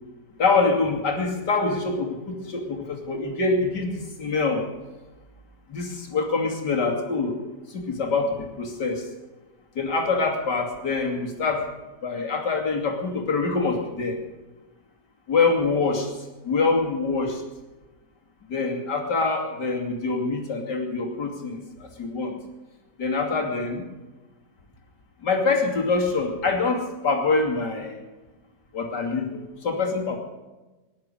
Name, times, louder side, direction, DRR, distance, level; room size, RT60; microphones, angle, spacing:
voice 1, 0.4-4.7 5.7-7.4 7.7-9.1 9.7-11.7 12.0-14.2 15.3-16.1 16.4-17.4 18.5-22.4 23.0-23.8 25.2-28.0 28.7-30.2, left 3 dB, 80° left, 2 dB, 3.2 m, -25 dB
18.0 x 11.5 x 6.8 m, 1.2 s
omnidirectional pair, 1.8 m